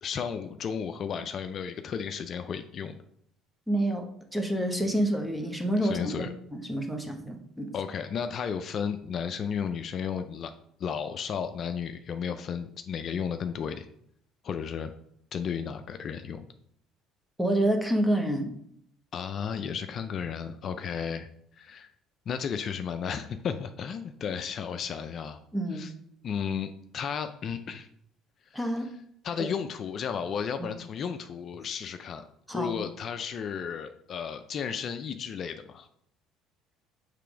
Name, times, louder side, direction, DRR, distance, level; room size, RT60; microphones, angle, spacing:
voice 1, 0.0-3.0 5.8-6.3 7.7-10.5 10.8-13.9 14.4-14.9 15.3-16.5 19.1-21.9 22.3-25.4 25.7-25.9 26.2-27.9 28.4-28.9 29.2-32.2 32.5-35.9, left 7 dB, 45° left, 8 dB, 0.4 m, -34 dB
voice 2, 3.7-7.7 17.4-18.5 25.5-25.9 28.5-28.9 30.6-30.7 32.5-32.8, right 1 dB, 5° right, 3 dB, 1.1 m, -28 dB
6.6 x 3.4 x 5.0 m, 0.69 s
cardioid pair, 105°, 0 cm